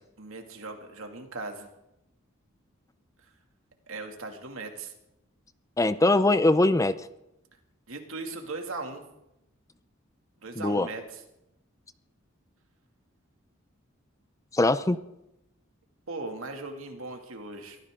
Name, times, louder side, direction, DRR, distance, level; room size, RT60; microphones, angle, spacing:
voice 1, 0.2-1.7 3.9-4.9 7.9-9.0 10.4-11.0 16.1-17.8, right 3 dB, 80° right, 3 dB, 2.5 m, -38 dB
voice 2, 5.8-7.0 10.6-10.9 14.5-15.0, left 2 dB, 15° left, 13 dB, 0.5 m, -22 dB
23.0 x 14.5 x 3.8 m, 0.88 s
head